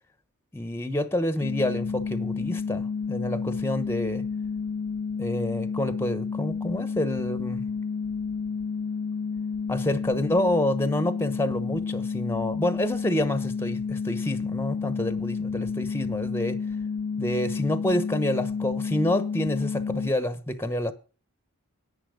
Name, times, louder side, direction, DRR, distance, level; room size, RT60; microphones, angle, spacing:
voice 1, 0.5-4.2 5.2-7.7 9.7-16.6 17.2-20.9, left 1 dB, 10° left, 1.0 m, -28 dB
sound 1, 1.4-20.1, left 5 dB, 40° left, 0.6 m, -30 dB
10.5 x 9.1 x 6.3 m
head